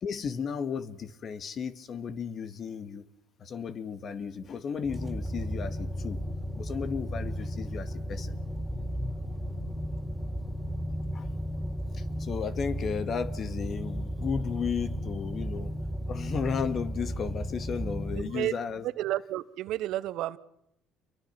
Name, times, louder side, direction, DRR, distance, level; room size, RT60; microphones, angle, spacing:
voice 1, 0.0-3.0 3.4-6.2 6.6-8.3 11.1-11.3 11.9-15.7 16.1-18.9, left 6 dB, 50° left, 11 dB, 2.1 m, -34 dB
sound 1, 4.8-18.2, equal, 5° right, 4.1 m, -34 dB
voice 2, 18.2-18.5 18.8-20.4, right 14 dB, 70° right, 16 dB, 1.1 m, -31 dB
28.5 x 23.0 x 6.1 m, 0.81 s
hypercardioid pair, 65°, 0 cm